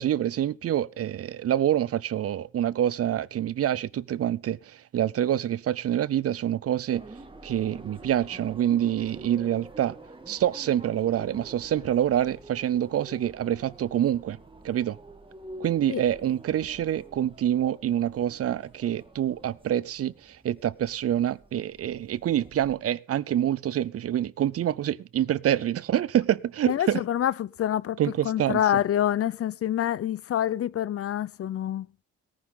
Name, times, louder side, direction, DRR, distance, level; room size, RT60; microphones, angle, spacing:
voice 1, 0.0-7.0 7.4-10.0 10.3-14.4 14.6-15.0 15.6-27.0 28.0-28.8, right 11 dB, 50° right, 0.6 m, -26 dB
sound 1, 6.9-22.7, right 2 dB, 15° right, 1.9 m, -47 dB
voice 2, 26.7-28.0 28.2-31.9, left 11 dB, 50° left, 0.6 m, -26 dB
18.0 x 9.8 x 3.8 m
cardioid pair, 90°, 30 cm